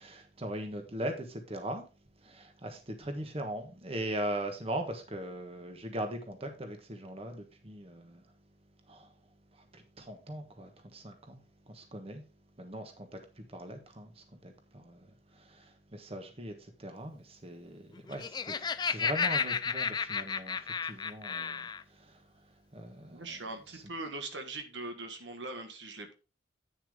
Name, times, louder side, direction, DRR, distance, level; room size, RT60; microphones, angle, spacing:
voice 1, 0.0-1.8 2.2-8.2 8.9-9.1 9.5-12.2 12.6-22.3 22.7-23.4 23.7-23.8, right 1 dB, 35° right, 1.4 m, -40 dB
Laughter, 18.0-21.8, left 6 dB, 25° left, 0.3 m, -32 dB
voice 2, 23.1-26.1, right 2 dB, 85° right, 1.6 m, -41 dB
9.0 x 7.1 x 3.6 m
head